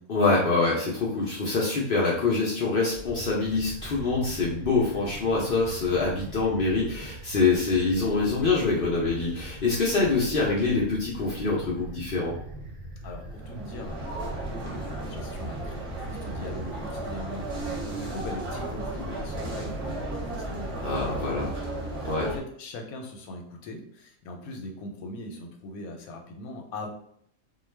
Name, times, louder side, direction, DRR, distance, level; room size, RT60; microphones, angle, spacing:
voice 1, 0.1-12.3 20.8-21.5 22.1-22.3, left 3 dB, 60° left, -4 dB, 0.6 m, -25 dB
sound 1, 2.9-21.2, right 2 dB, 65° right, 0.5 m, -41 dB
voice 2, 13.0-26.9, left 2 dB, 85° left, 2 dB, 1.1 m, -41 dB
sound 2, 13.2-22.4, right 1 dB, 30° right, 0.7 m, -35 dB
2.3 x 2.3 x 3.2 m, 0.66 s
omnidirectional pair, 1.5 m